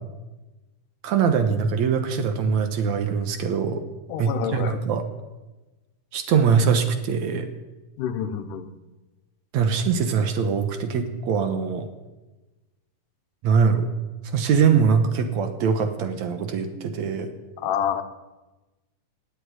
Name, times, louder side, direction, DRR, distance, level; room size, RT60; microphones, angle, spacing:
voice 1, 1.0-3.8 4.2-5.0 6.1-7.5 9.5-11.9 13.4-13.9 14.3-17.3, right 6 dB, 70° right, 7 dB, 2.3 m, -22 dB
voice 2, 4.1-4.8 8.0-8.7 17.6-18.0, left 9 dB, 80° left, 8 dB, 2.5 m, -27 dB
16.5 x 8.3 x 9.5 m, 1.1 s
omnidirectional pair, 3.7 m